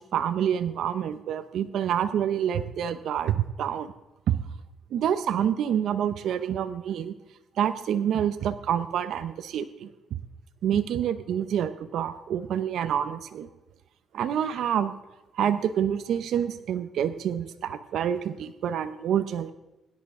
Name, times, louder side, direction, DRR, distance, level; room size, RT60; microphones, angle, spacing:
voice 1, 0.1-3.9 4.3-4.4 4.9-7.1 7.6-9.9 10.6-13.5 14.1-14.9 15.3-19.5, right 9 dB, 75° right, 11 dB, 0.7 m, -27 dB
18.0 x 10.5 x 3.7 m, 1.0 s
cardioid pair, 90°, 0 cm